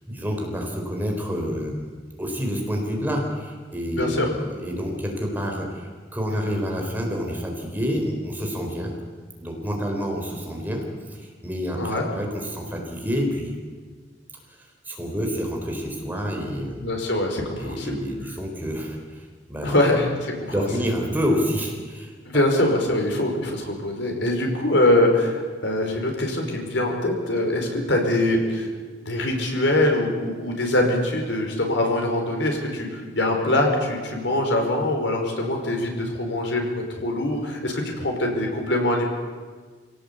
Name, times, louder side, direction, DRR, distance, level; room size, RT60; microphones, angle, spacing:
voice 1, 0.1-1.9 2.2-8.9 9.4-13.5 14.5-16.9 17.6-19.8 20.5-22.6, equal, 10° right, 1 dB, 4.2 m, -28 dB
voice 2, 3.9-4.3 11.8-12.0 16.8-18.0 19.6-20.1 20.6-20.7 22.2-28.7 29.0-39.1, left 1 dB, 75° left, 2 dB, 5.0 m, -23 dB
25.0 x 17.5 x 8.4 m, 1.5 s
head